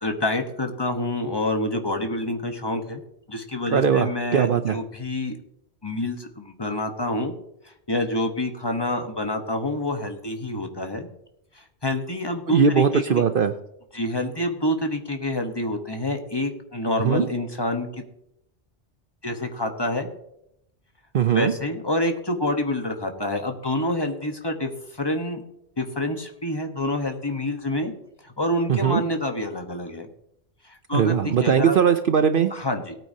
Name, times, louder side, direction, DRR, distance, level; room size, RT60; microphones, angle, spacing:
voice 1, 0.0-3.0 3.3-5.4 5.8-7.3 7.9-11.1 11.8-13.2 13.9-17.9 19.2-20.1 21.3-24.7 25.0-25.4 25.8-27.9 28.2-30.1 30.7-31.8 32.5-32.9, left 1 dB, 20° left, 4 dB, 1.1 m, -27 dB
voice 2, 3.7-4.8 12.5-13.5 17.0-17.3 21.1-21.5 28.7-29.0 30.9-32.5, right 7 dB, 60° right, 9 dB, 0.7 m, -20 dB
18.5 x 8.8 x 2.8 m, 0.77 s
omnidirectional pair, 1.2 m